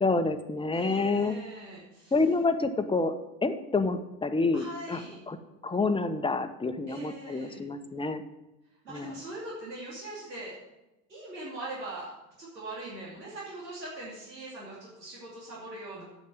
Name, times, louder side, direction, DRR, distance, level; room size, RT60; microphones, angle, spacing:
voice 1, 0.0-1.4 2.1-5.0 5.3-5.4 5.6-8.2 8.9-9.2, left 3 dB, 10° left, 9 dB, 0.9 m, -28 dB
voice 2, 0.7-2.1 4.5-5.2 6.9-7.6 8.8-10.6 11.1-12.1 12.4-16.0, right 2 dB, 85° right, -6 dB, 2.9 m, -41 dB
8.6 x 7.2 x 7.7 m, 0.98 s
figure-of-eight pair, 70°, 49 cm